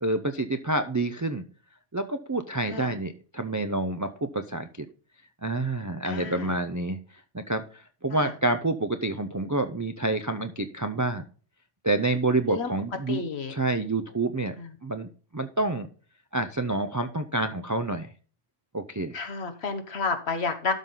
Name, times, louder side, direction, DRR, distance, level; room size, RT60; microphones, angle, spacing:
voice 1, 0.0-1.4 1.9-4.9 5.4-7.0 7.3-11.2 11.8-13.2 13.5-14.6 14.8-15.9 16.3-18.1 18.7-19.2, right 2 dB, 30° right, 8 dB, 0.3 m, -28 dB
voice 2, 6.0-6.5 8.1-8.3 12.5-12.7 13.1-13.5 14.6-14.7 19.1-20.7, left 4 dB, 60° left, 7 dB, 1.4 m, -30 dB
12.5 x 5.7 x 3.8 m, 0.39 s
omnidirectional pair, 1.3 m